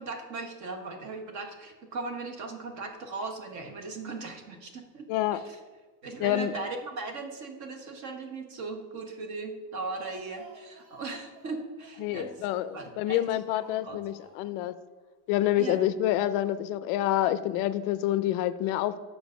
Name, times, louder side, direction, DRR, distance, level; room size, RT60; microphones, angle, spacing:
voice 1, 0.0-5.0 5.3-5.6 6.0-12.4 12.7-14.0 15.6-15.8, right 3 dB, 40° right, 5 dB, 1.1 m, -38 dB
voice 2, 5.1-5.4 6.2-6.5 12.0-14.7 15.3-19.0, left 13 dB, 50° left, 13 dB, 0.4 m, -27 dB
Speech, 9.6-13.1 13.5-14.7 14.9-15.0 15.3-15.4, right 3 dB, 60° right, 1.9 m, -54 dB
7.1 x 4.9 x 6.2 m, 1.4 s
cardioid pair, 180°, 44 cm